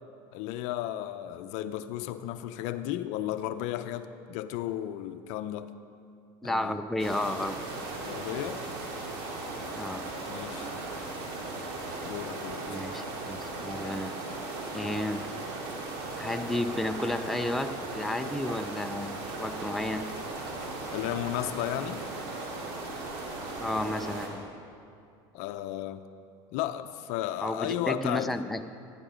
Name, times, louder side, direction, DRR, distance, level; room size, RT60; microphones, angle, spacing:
voice 1, 0.3-5.7 6.4-6.7 8.0-8.6 10.3-10.7 12.0-12.7 20.9-22.0 25.3-26.0 26.5-28.3, left 13 dB, 70° left, 10 dB, 0.6 m, -34 dB
voice 2, 6.4-7.7 9.7-10.1 12.6-14.2 14.7-15.3 16.2-20.1 23.6-24.5 27.4-28.6, left 1 dB, ahead, 7 dB, 0.6 m, -32 dB
sound 1, 7.0-24.3, right 2 dB, 70° right, 2.6 m, -37 dB
16.0 x 10.0 x 5.1 m, 2.4 s
supercardioid pair, 95°, 13 cm